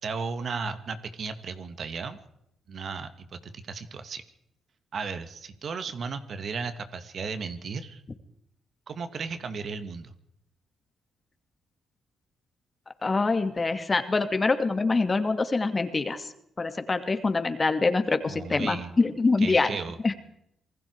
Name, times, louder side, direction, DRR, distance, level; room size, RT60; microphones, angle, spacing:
voice 1, 0.0-2.2 2.7-4.2 4.9-8.0 8.9-10.1 18.3-18.9 19.4-20.0, right 5 dB, 55° right, 10 dB, 2.3 m, -35 dB
voice 2, 13.0-16.3 16.6-19.8 20.0-20.1, left 3 dB, 30° left, 8 dB, 2.6 m, -25 dB
27.0 x 20.5 x 4.9 m, 0.77 s
cardioid pair, 75°, 0 cm